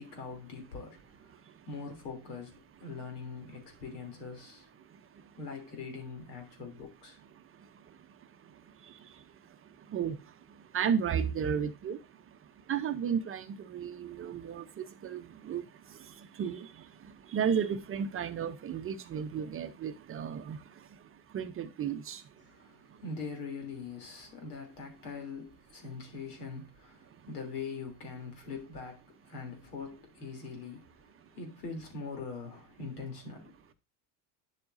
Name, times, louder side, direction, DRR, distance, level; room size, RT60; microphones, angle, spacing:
voice 1, 0.0-4.9 5.4-7.2 22.4-33.6, left 4 dB, 85° left, 3.1 m, -43 dB
voice 2, 10.7-12.0 12.7-15.6 16.4-16.7 17.3-20.6 21.3-22.2, right 7 dB, 30° right, 0.7 m, -33 dB
9.7 x 7.0 x 2.6 m
supercardioid pair, 100°, 46 cm